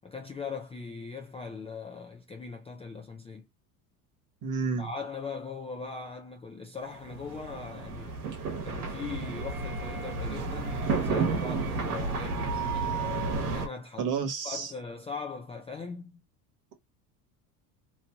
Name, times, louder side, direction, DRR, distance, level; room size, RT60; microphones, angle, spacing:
voice 1, 0.0-3.5 4.8-8.1 8.6-14.1 14.4-16.2, left 4 dB, 15° left, 0.4 m, -40 dB
voice 2, 4.4-4.9 14.0-14.7, right 5 dB, 45° right, 1.2 m, -30 dB
sound 1, 6.9-13.7, right 4 dB, 90° right, 1.2 m, -31 dB
3.0 x 2.5 x 2.2 m
supercardioid pair, 90°, 44 cm